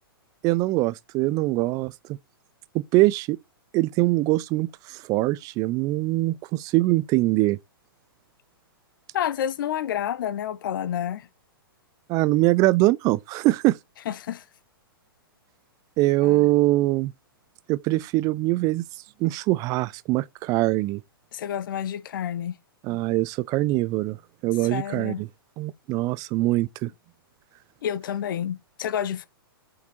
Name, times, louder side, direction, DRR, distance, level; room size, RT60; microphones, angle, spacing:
voice 1, 0.4-2.2 2.7-3.4 3.7-7.6 12.1-13.8 16.0-17.1 17.7-18.8 19.2-21.0 22.8-24.2 24.4-25.3 25.6-26.9, right 19 dB, 30° right, 0.4 m, -23 dB
voice 2, 9.1-11.3 14.1-14.4 16.2-16.5 21.3-22.5 24.6-25.2 27.8-29.3, left 10 dB, 60° left, 0.8 m, -29 dB
6.9 x 4.9 x 4.4 m
hypercardioid pair, 120°, 12 cm